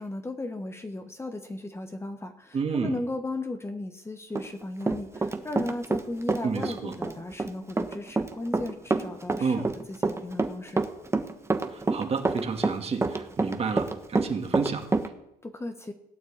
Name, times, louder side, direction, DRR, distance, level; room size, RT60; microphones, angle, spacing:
voice 1, 0.0-10.8 15.4-15.9, left 2 dB, 15° left, 7 dB, 1.3 m, -36 dB
voice 2, 2.5-3.0 6.4-7.0 9.4-9.7 11.7-14.9, right 5 dB, 35° right, 4 dB, 2.3 m, -30 dB
Run, 4.3-6.0 6.3-15.1, right 3 dB, 15° right, 1.3 m, -27 dB
17.0 x 9.3 x 8.8 m, 0.87 s
cardioid pair, 110°, 17 cm